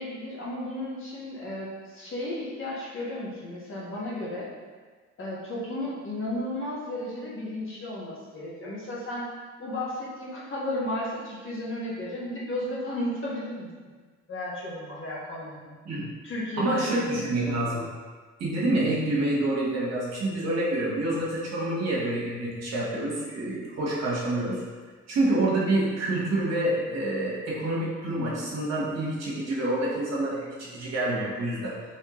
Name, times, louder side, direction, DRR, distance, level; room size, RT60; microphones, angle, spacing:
voice 1, 0.0-4.5 5.2-9.2 9.6-13.7 14.3-15.8 16.2-17.6, left 1 dB, 45° left, -6 dB, 1.2 m, -34 dB
voice 2, 16.6-17.8 18.4-24.6 25.1-31.8, right 1 dB, 60° right, -5 dB, 1.1 m, -27 dB
3.5 x 3.0 x 3.0 m, 1.4 s
cardioid pair, 90°, 30 cm